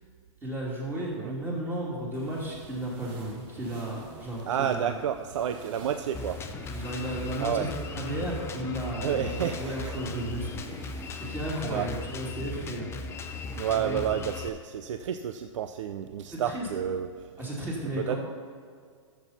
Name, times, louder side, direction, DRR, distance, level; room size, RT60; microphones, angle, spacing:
voice 1, 0.4-5.0 6.7-10.5 11.1-12.9 13.7-14.0 16.3-16.7 17.4-18.2, right 1 dB, 10° right, -4 dB, 2.8 m, -34 dB
sound 1, 2.1-12.4, right 3 dB, 45° right, 1.6 m, -49 dB
voice 2, 4.5-6.4 7.4-7.7 9.0-10.0 11.6-11.9 13.5-17.3 18.0-18.2, right 9 dB, 70° right, 9 dB, 0.5 m, -30 dB
Drum kit, 6.1-14.5, left 4 dB, 15° left, 0.7 m, -38 dB
12.5 x 7.4 x 4.2 m, 2.1 s
hypercardioid pair, 130°, 17 cm